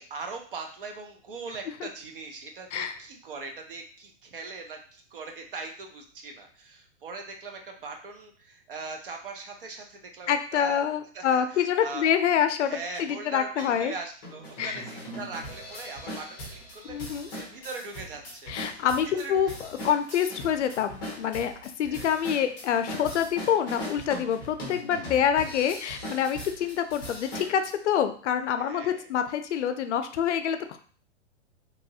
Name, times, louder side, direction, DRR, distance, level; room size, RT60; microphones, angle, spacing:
voice 1, 0.0-10.8 11.1-12.1 12.6-19.5 20.1-20.2 21.6-22.2 24.9-25.0 28.6-29.1, right 4 dB, 50° right, 4 dB, 0.5 m, -41 dB
voice 2, 10.3-13.9 14.6-14.8 16.9-17.3 18.5-30.8, left 8 dB, 70° left, 8 dB, 0.5 m, -26 dB
sound 1, 12.9-13.0 13.6-13.7 14.2-27.7, equal, 15° left, 0.6 m, -40 dB
2.9 x 2.4 x 2.7 m, 0.43 s
hypercardioid pair, 175°, 37 cm